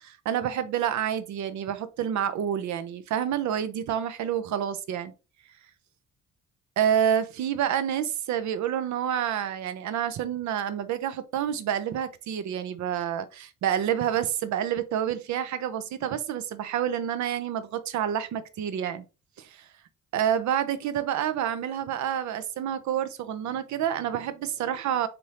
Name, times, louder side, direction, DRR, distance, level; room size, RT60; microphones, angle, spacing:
voice 1, 0.0-5.1 6.8-19.0 19.4-19.7 20.1-25.1, right 9 dB, 70° right, 0.6 m, -28 dB
4.2 x 2.6 x 3.2 m
cardioid pair, 90°, 30 cm